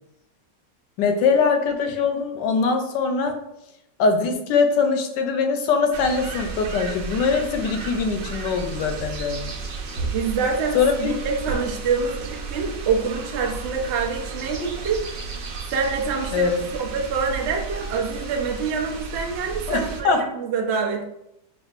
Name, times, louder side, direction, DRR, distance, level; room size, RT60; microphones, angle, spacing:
voice 1, 1.0-3.4 4.0-9.5 10.7-11.1 16.3-16.6 19.7-20.3, left 5 dB, 80° left, 5 dB, 1.2 m, -22 dB
sound 1, 5.9-20.0, right 4 dB, 90° right, 1.4 m, -33 dB
voice 2, 10.1-15.1 15.7-16.5 16.8-21.0, right 5 dB, 70° right, 1 dB, 0.6 m, -26 dB
6.1 x 2.4 x 2.4 m, 0.84 s
omnidirectional pair, 1.9 m